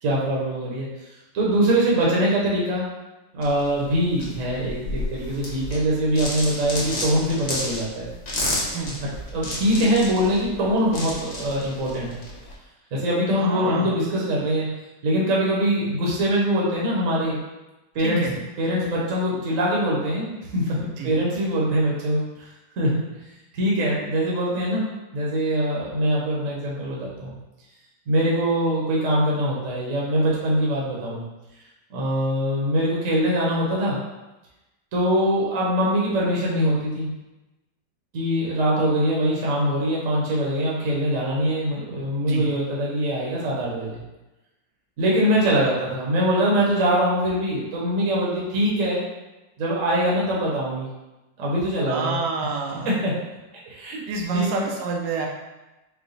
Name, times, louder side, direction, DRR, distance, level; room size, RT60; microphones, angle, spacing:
voice 1, 0.0-0.9 1.3-2.9 3.3-8.1 9.3-12.2 12.9-14.7 15.0-17.4 17.9-18.2 18.6-22.2 22.8-23.0 23.5-27.3 28.1-31.2 31.9-34.0 34.9-37.1 38.1-44.0 45.0-49.1 49.6-50.9 51.4-52.2 52.8-53.2 53.6-54.0 54.3-54.5, equal, 50° right, -5 dB, 1.2 m, -23 dB
sound 1, 3.4-12.5, left 1 dB, 50° left, 0.5 m, -32 dB
voice 2, 13.4-14.0 18.0-18.3 21.0-21.1 42.2-42.5 51.9-53.0 54.1-55.3, right 4 dB, 75° right, 0 dB, 1.3 m, -28 dB
4.8 x 2.3 x 4.0 m, 1.0 s
omnidirectional pair, 2.0 m